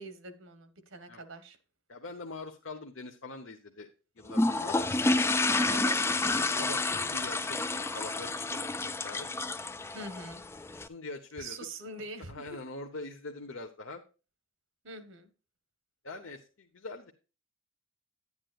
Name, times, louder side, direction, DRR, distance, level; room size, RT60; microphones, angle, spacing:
voice 1, 0.0-1.6 5.7-6.0 9.9-10.4 11.4-12.6 14.8-15.3, right 2 dB, 70° right, 11 dB, 1.3 m, -44 dB
voice 2, 1.9-3.9 4.2-4.9 6.3-8.8 9.0-9.3 10.7-11.6 12.2-14.0 16.0-17.1, left 2 dB, 75° left, 2 dB, 1.0 m, -43 dB
sound 1, 4.3-10.9, left 2 dB, 10° left, 0.4 m, -29 dB
10.5 x 9.6 x 2.4 m, 0.33 s
head